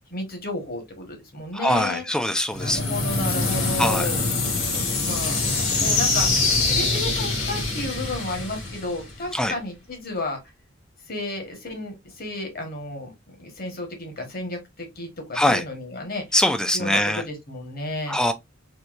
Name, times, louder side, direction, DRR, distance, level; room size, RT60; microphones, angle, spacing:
voice 1, 0.1-2.0 2.6-4.2 4.7-5.4 5.8-6.3 6.6-10.4 11.1-16.2 16.7-18.2, left 2 dB, 50° left, 1.4 m, -32 dB
voice 2, 1.5-2.8 3.8-4.1 9.3-9.5 15.3-15.6 16.3-17.2 18.1-18.3, left 1 dB, 5° left, 0.4 m, -22 dB
sound 1, 2.5-9.4, left 3 dB, 80° left, 2.2 m, -24 dB
4.5 x 2.7 x 2.5 m
head